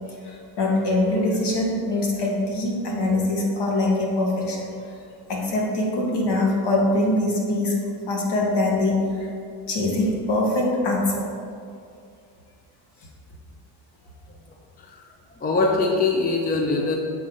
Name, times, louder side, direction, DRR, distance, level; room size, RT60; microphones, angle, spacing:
voice 1, 0.3-4.7 5.3-7.8 8.1-9.3 9.7-11.2, left 2 dB, 60° left, -1 dB, 1.5 m, -23 dB
voice 2, 15.4-17.0, left 3 dB, 20° left, 1 dB, 0.5 m, -22 dB
7.6 x 4.3 x 3.9 m, 2.3 s
cardioid pair, 125°, 47 cm